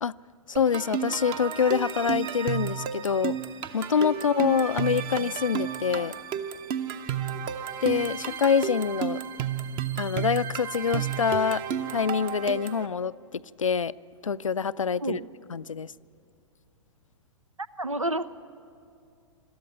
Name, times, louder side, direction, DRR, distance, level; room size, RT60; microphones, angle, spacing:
voice 1, 0.5-3.4 3.7-6.1 7.8-9.2 10.0-11.6 11.9-13.9 14.2-15.2 15.5-15.9, left 6 dB, 80° left, 18 dB, 0.4 m, -26 dB
sound 1, 0.6-12.9, right 8 dB, 30° right, 0.8 m, -32 dB
voice 2, 17.8-18.3, right 1 dB, 90° right, 16 dB, 0.8 m, -30 dB
22.0 x 13.5 x 9.8 m, 2.4 s
figure-of-eight pair, 110°, 16 cm